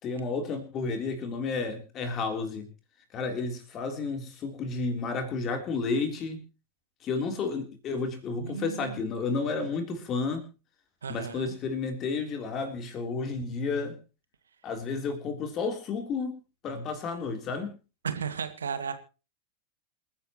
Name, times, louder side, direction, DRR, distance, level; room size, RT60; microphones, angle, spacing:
voice 1, 0.0-2.7 3.1-6.4 7.0-10.4 11.1-14.0 14.6-16.3 16.6-17.7, left 4 dB, 30° left, 6 dB, 3.6 m, -31 dB
voice 2, 8.4-9.0 11.0-11.6 18.0-18.9, right 6 dB, 70° right, 9 dB, 2.0 m, -34 dB
27.5 x 10.5 x 3.1 m, 0.32 s
figure-of-eight pair, 90°, 0 cm